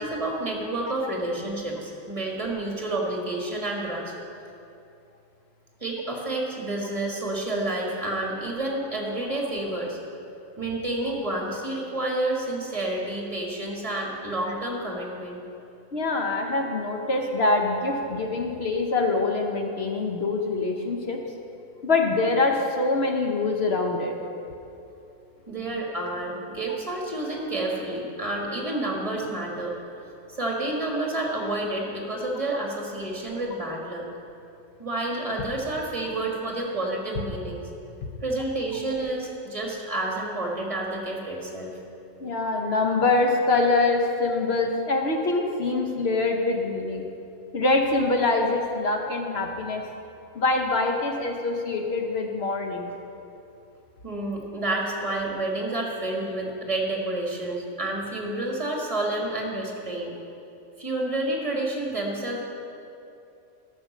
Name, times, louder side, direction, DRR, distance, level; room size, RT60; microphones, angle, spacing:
voice 1, 0.0-4.1 5.8-10.0 10.6-15.4 25.5-29.7 30.4-34.1 34.8-37.6 38.2-41.8 54.0-60.1 60.8-62.4, right 2 dB, 25° right, -1 dB, 1.6 m, -29 dB
voice 2, 15.9-21.2 21.8-24.1 42.2-47.1 47.5-49.8 50.3-52.9, left 3 dB, 50° left, 2 dB, 1.0 m, -24 dB
13.0 x 6.6 x 6.0 m, 2.7 s
omnidirectional pair, 1.5 m